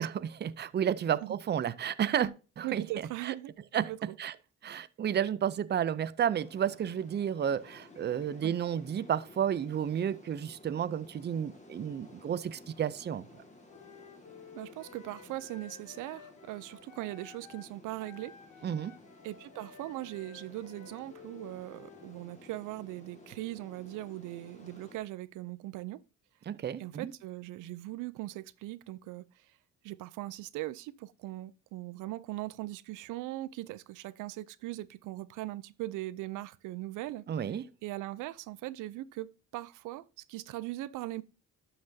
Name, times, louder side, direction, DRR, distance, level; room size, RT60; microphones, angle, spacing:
voice 1, 0.0-2.9 3.2-3.3 3.7-4.3 4.6-13.2 18.6-18.9 26.5-27.1 37.3-37.7, right 9 dB, 35° right, 0.5 m, -32 dB
voice 2, 2.6-4.2 8.4-8.6 14.5-18.4 19.2-26.0 26.8-29.6 29.8-41.2, right 16 dB, 90° right, 0.5 m, -40 dB
sound 1, 6.3-25.0, left 2 dB, 25° left, 1.9 m, -55 dB
Wind instrument woodwind instrument, 13.7-17.7 18.0-22.2, left 6 dB, 85° left, 1.7 m, -54 dB
11.5 x 5.9 x 2.7 m
cardioid pair, 90°, 30 cm